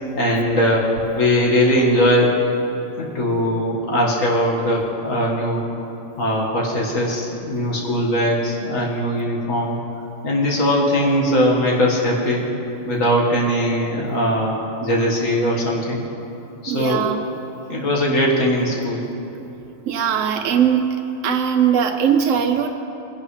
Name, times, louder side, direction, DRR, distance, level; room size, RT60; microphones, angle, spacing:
voice 1, 0.2-2.4 3.0-5.6 6.2-9.8 10.2-12.4 12.9-16.0 16.6-17.1 17.7-19.0, equal, 90° left, -3 dB, 2.1 m, -20 dB
voice 2, 16.7-17.2 19.9-21.0 21.2-22.7, right 8 dB, 85° right, 5 dB, 1.0 m, -19 dB
20.0 x 11.0 x 3.2 m, 2.9 s
omnidirectional pair, 1.3 m